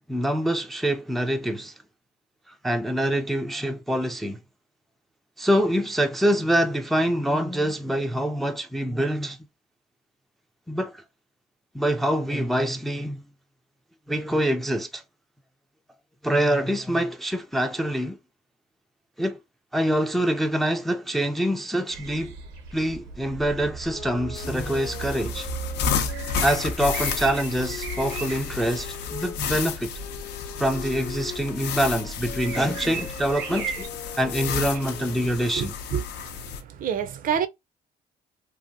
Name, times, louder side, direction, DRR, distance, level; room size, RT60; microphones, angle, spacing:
voice 1, 0.1-1.7 2.6-4.4 5.4-9.4 10.7-11.0 11.7-13.2 14.1-15.0 16.2-18.2 19.2-19.4 19.7-22.3 22.7-25.5 26.4-29.9 30.6-33.9 34.2-35.7, equal, ahead, 0.3 m, -25 dB
sound 1, 21.9-33.9, right 5 dB, 85° right, 0.7 m, -37 dB
sound 2, 23.8-29.4 30.0-35.6, left 6 dB, 40° left, 0.8 m, -41 dB
sound 3, 24.4-36.6, left 7 dB, 80° left, 0.6 m, -32 dB
voice 2, 35.5-37.5, right 8 dB, 55° right, 0.5 m, -29 dB
2.8 x 2.5 x 2.6 m
cardioid pair, 110°, 17 cm